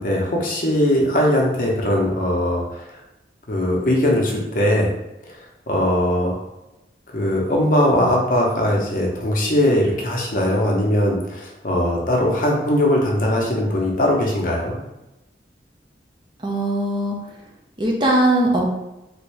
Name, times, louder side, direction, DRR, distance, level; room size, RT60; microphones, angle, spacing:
voice 1, 0.0-2.9 3.5-4.9 5.3-5.4 5.7-6.3 7.1-14.8, left 1 dB, 45° left, -2 dB, 0.7 m, -20 dB
voice 2, 16.4-17.2 17.8-18.7, right 1 dB, 25° right, -1 dB, 0.5 m, -19 dB
3.4 x 2.6 x 3.1 m, 0.95 s
head